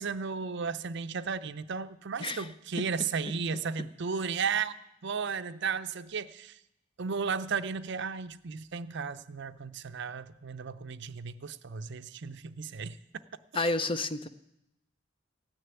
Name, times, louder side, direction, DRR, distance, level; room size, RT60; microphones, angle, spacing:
voice 1, 0.0-4.7 5.0-6.6 7.0-13.0 13.5-13.7, right 5 dB, 60° right, 0.6 m, -34 dB
voice 2, 13.5-14.3, left 2 dB, 25° left, 0.6 m, -30 dB
16.0 x 6.7 x 9.2 m
head